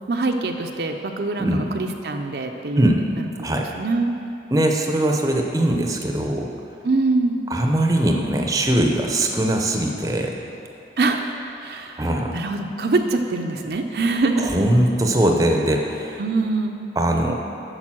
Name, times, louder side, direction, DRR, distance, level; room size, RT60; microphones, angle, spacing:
voice 1, 0.1-2.9 3.8-4.1 6.8-7.4 11.0-11.3 11.6-12.0 12.3-14.5 16.2-16.8, right 3 dB, 65° right, 4 dB, 0.6 m, -23 dB
voice 2, 4.5-6.5 7.5-10.4 12.0-12.3 14.4-16.2 17.0-17.3, right 1 dB, 20° right, 2 dB, 0.6 m, -21 dB
8.8 x 6.5 x 6.1 m, 2.8 s
head